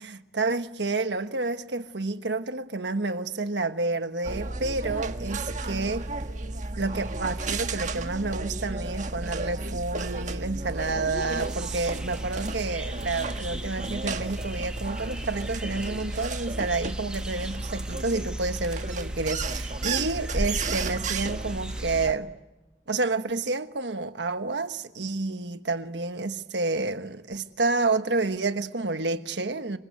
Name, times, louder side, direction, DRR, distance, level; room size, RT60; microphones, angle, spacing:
voice 1, 0.0-6.0 6.8-22.3 22.9-29.8, right 3 dB, 85° right, 1.3 m, -29 dB
sound 1, 4.2-22.1, right 2 dB, 45° right, 1.4 m, -33 dB
sound 2, 11.1-22.1, right 1 dB, 5° right, 1.4 m, -39 dB
26.5 x 24.0 x 9.2 m
head